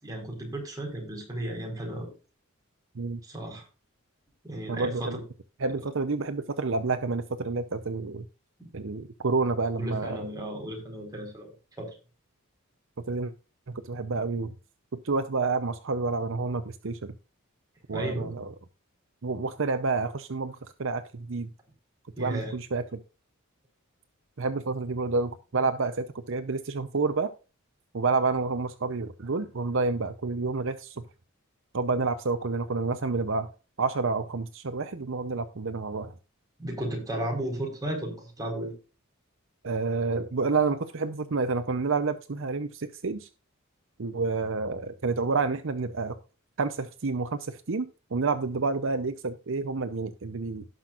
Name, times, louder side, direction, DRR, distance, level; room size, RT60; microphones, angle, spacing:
voice 1, 0.0-2.1 3.2-3.6 4.4-5.2 8.6-8.7 9.8-11.5 11.8-12.0 17.9-18.3 22.2-22.5 36.6-38.7, right 1 dB, 15° right, 0 dB, 4.5 m, -34 dB
voice 2, 4.7-5.2 5.6-8.3 8.7-10.2 13.1-13.3 13.7-14.5 15.0-17.1 17.9-18.5 19.2-21.5 22.2-23.0 24.4-27.3 27.9-31.0 31.7-33.5 33.8-36.1 39.6-43.3 44.0-46.1 46.6-50.7, right 4 dB, 60° right, 10 dB, 0.7 m, -29 dB
17.5 x 6.0 x 2.5 m, 0.33 s
head